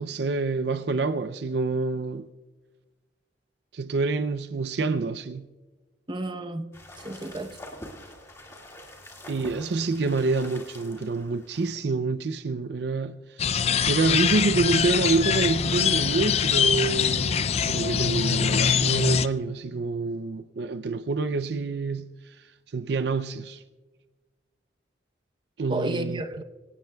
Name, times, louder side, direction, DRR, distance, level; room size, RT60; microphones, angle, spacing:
voice 1, 0.0-2.3 3.7-5.5 9.3-13.5 13.9-22.4 22.7-23.6 25.6-26.2, right 3 dB, 65° right, 0.5 m, -27 dB
voice 2, 6.1-6.7 7.0-7.6 25.7-26.4, right 1 dB, 25° right, 0.8 m, -32 dB
sound 1, 6.7-11.7, left 1 dB, 15° left, 1.9 m, -45 dB
sound 2, 13.4-19.3, left 7 dB, 35° left, 0.4 m, -23 dB
26.5 x 18.0 x 2.3 m
head